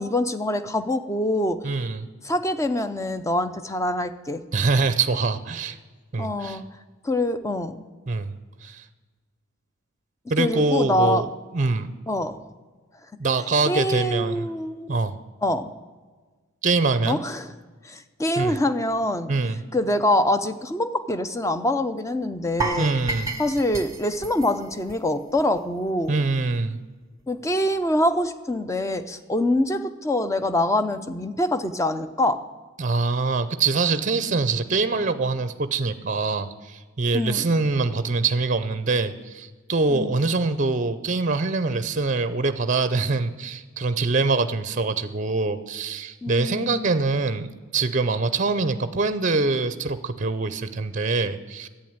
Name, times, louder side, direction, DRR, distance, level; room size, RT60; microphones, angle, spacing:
voice 1, 0.0-1.6 2.2-4.4 6.2-6.6 7.0-7.8 10.4-11.2 12.1-12.4 13.7-14.9 15.4-15.7 17.1-17.5 17.8-19.3 19.7-22.9 23.4-26.2 27.3-32.4 37.1-37.4 39.9-40.2 46.2-46.9, left 1 dB, 15° left, 11 dB, 0.6 m, -25 dB
voice 2, 1.6-2.1 4.5-5.8 6.1-6.6 8.1-8.3 8.6-8.8 10.3-11.3 11.5-11.9 13.2-14.5 14.9-15.2 16.6-17.2 18.4-18.6 19.3-19.6 22.8-23.3 26.1-26.8 32.8-51.7, right 3 dB, 35° right, 13 dB, 0.6 m, -24 dB
sound 1, 22.6-25.6 25.9-26.1 26.5-26.6, right 3 dB, 15° right, 0.9 m, -31 dB
11.0 x 8.7 x 8.7 m, 1.4 s
head